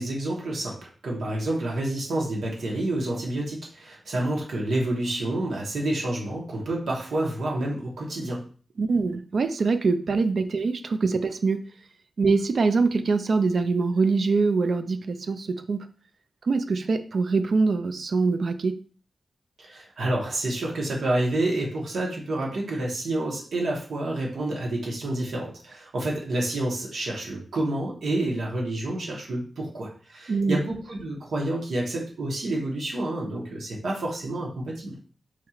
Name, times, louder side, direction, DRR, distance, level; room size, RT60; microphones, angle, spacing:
voice 1, 0.0-8.4 19.6-35.0, right 1 dB, 85° right, -2 dB, 1.1 m, -29 dB
voice 2, 8.8-11.6 12.2-15.9 16.5-18.8 30.3-30.6, right 4 dB, 55° right, 10 dB, 0.3 m, -24 dB
4.4 x 2.9 x 2.4 m, 0.40 s
wide cardioid pair, 165°, 0 cm